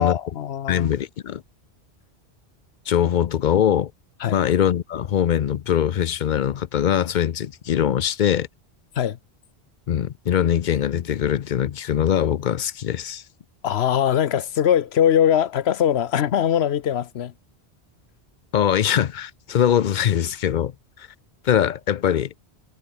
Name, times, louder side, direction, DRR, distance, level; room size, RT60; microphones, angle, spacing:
voice 1, 0.0-0.9 4.2-4.4 9.0-9.2 13.6-17.3, left 9 dB, 75° left, 1.0 m, -21 dB
voice 2, 0.7-1.4 2.9-3.9 4.3-8.5 9.9-13.2 18.5-20.7 21.4-22.3, left 9 dB, 55° left, 0.6 m, -22 dB
omnidirectional pair, 1.1 m